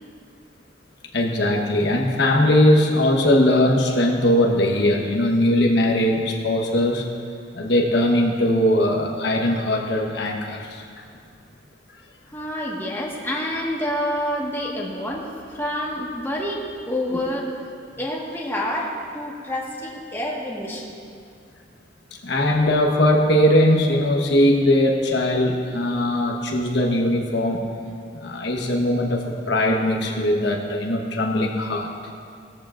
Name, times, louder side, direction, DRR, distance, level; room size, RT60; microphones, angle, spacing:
voice 1, 1.1-7.0 7.5-11.0 22.2-27.6 28.1-31.9, left 1 dB, 65° left, 0 dB, 1.2 m, -20 dB
voice 2, 12.3-17.6 18.0-20.9, left 1 dB, 10° left, -3 dB, 1.6 m, -28 dB
18.5 x 14.0 x 2.6 m, 2.4 s
head